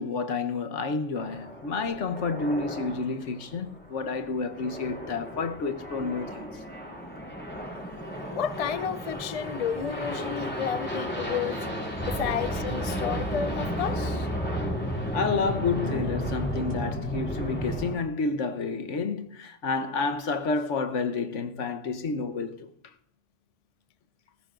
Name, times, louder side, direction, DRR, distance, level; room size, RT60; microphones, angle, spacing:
voice 1, 0.0-6.5 15.1-22.7, left 4 dB, 85° left, 1.4 m, -30 dB
sound 1, 1.1-18.0, equal, 10° left, 3.4 m, -34 dB
voice 2, 8.3-11.7 12.0-14.3, left 8 dB, 40° left, 0.6 m, -31 dB
sound 2, 11.9-17.9, right 1 dB, 20° right, 3.0 m, -36 dB
18.5 x 15.5 x 2.5 m
omnidirectional pair, 1.2 m